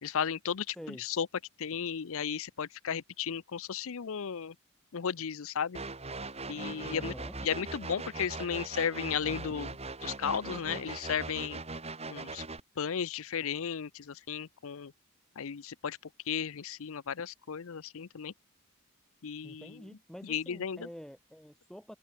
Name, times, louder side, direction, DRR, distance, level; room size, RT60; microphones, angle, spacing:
voice 1, 0.0-1.3 1.6-4.5 4.9-5.8 6.5-7.1 7.4-11.6 12.1-12.4 12.8-14.9 15.4-16.0 16.3-18.3 19.2-19.8 20.2-20.9, left 7 dB, 65° left, 0.6 m, -34 dB
sound 1, 5.7-12.6, right 3 dB, 30° right, 4.3 m, -40 dB
voice 2, 6.8-7.3 19.4-22.0, equal, 5° left, 3.2 m, -47 dB
head